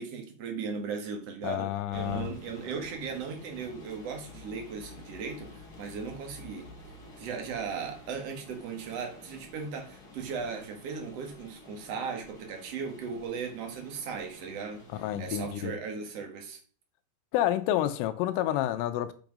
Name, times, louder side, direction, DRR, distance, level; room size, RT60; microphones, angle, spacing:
voice 1, 0.0-6.7 7.2-14.9 15.2-16.6, right 5 dB, 65° right, 1.5 m, -37 dB
voice 2, 1.4-2.3 14.9-15.7 17.3-19.1, left 12 dB, 85° left, 3.4 m, -29 dB
sound 1, 1.9-15.6, left 2 dB, 30° left, 1.9 m, -50 dB
8.1 x 6.1 x 5.3 m
omnidirectional pair, 5.7 m